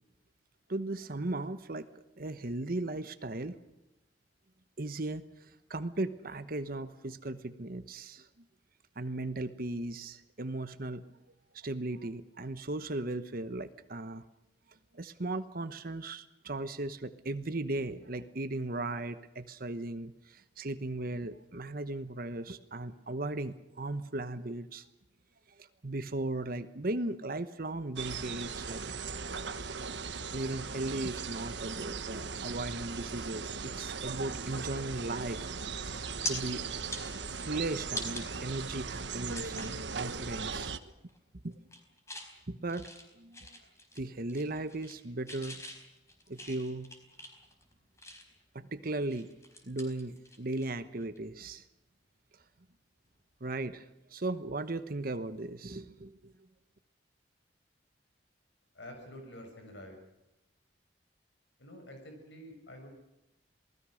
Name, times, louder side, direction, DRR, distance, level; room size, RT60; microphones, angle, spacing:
voice 1, 0.7-1.9 2.2-3.6 4.8-8.3 9.0-11.0 11.5-14.2 14.9-24.8 25.6-28.8 30.3-35.4 36.3-36.6 37.4-40.8 41.4-41.6 42.5-43.6 43.9-45.6 46.3-46.9 48.5-49.3 49.6-51.6 53.4-56.3, right 2 dB, 55° right, 11 dB, 1.1 m, -37 dB
sound 1, 28.0-40.8, right 5 dB, 75° right, 1.3 m, -38 dB
sound 2, 35.8-36.3 36.8-38.2 38.7-38.8 39.3-39.8 40.2-40.4 40.7-41.2 41.5-42.3 42.7-44.0 44.3-45.0 45.3-48.4 48.9-50.7 51.0-51.2 53.0-53.2, left 1 dB, 15° left, 4.6 m, -43 dB
voice 2, 58.7-60.0 61.6-63.0, left 1 dB, 85° left, 4 dB, 6.5 m, -48 dB
28.0 x 19.5 x 6.4 m, 0.91 s
head